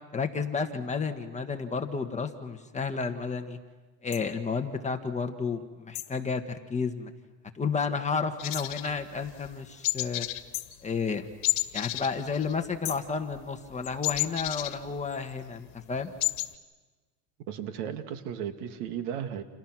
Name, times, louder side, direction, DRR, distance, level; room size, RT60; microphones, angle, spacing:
voice 1, 0.1-3.6 4.0-7.1 7.5-10.3 10.8-11.3 11.7-16.1, left 5 dB, 15° left, 5 dB, 1.5 m, -31 dB
sound 1, 4.1-4.3 5.9-6.2 8.5-8.8 10.5-10.8 12.8-13.2, left 15 dB, 45° left, 1.9 m, -38 dB
sound 2, 8.4-9.5 9.8-10.5 10.7-10.9 11.4-13.0 13.2-15.3 15.7-15.8 16.0-16.5, left 19 dB, 65° left, 1.8 m, -31 dB
voice 2, 17.5-19.4, right 9 dB, 70° right, 7 dB, 2.5 m, -35 dB
30.0 x 28.5 x 6.2 m, 1.3 s
supercardioid pair, 140°, 47 cm